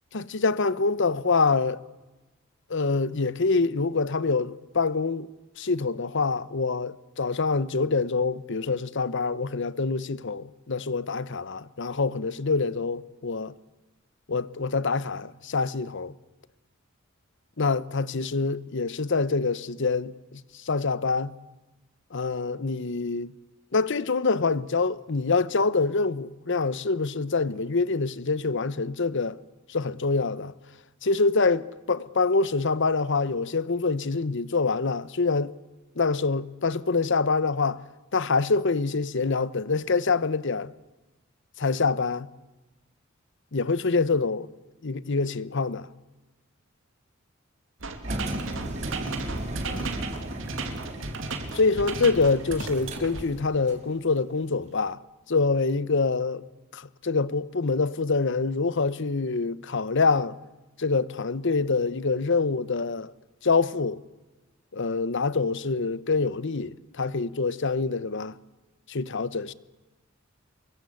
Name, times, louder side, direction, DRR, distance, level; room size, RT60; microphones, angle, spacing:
voice 1, 0.1-1.8 2.7-5.3 5.6-13.5 14.3-16.1 17.6-21.3 22.1-23.3 23.7-29.4 29.7-30.5 31.0-35.6 36.0-37.8 38.1-40.7 41.6-42.3 43.5-44.5 44.8-45.9 49.7-49.9 51.5-55.0 55.3-56.4 56.7-60.4 60.8-63.1 63.4-64.0 64.7-68.3 68.9-69.5, left 4 dB, 60° left, 0.9 m, -25 dB
sound 1, 47.8-53.2, right 3 dB, 65° right, 3.0 m, -35 dB
Engine, 48.0-53.9, right 1 dB, 35° right, 3.8 m, -36 dB
25.0 x 22.5 x 8.4 m
head